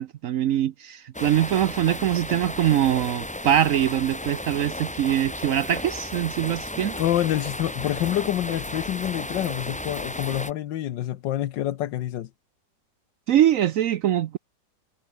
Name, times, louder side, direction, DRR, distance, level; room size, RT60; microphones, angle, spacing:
voice 1, 0.0-7.0 13.3-14.4, right 11 dB, 65° right, 0.8 m, -23 dB
sound 1, 1.1-10.5, left 1 dB, 10° left, 0.5 m, -34 dB
voice 2, 6.8-12.3, left 12 dB, 90° left, 1.6 m, -27 dB
omnidirectional pair, 1.9 m